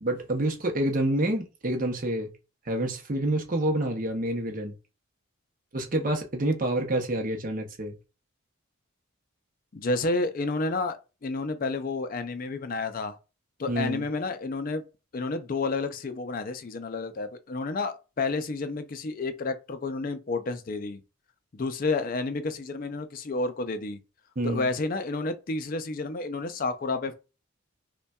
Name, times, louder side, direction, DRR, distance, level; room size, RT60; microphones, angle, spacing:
voice 1, 0.0-2.3 2.7-4.7 5.7-8.0 13.7-14.0 24.4-24.7, right 1 dB, 40° right, 0.7 m, -28 dB
voice 2, 9.7-13.2 13.6-14.8 15.1-21.0 21.5-24.0 24.4-27.1, left 3 dB, 40° left, 0.4 m, -30 dB
5.3 x 2.2 x 2.3 m
head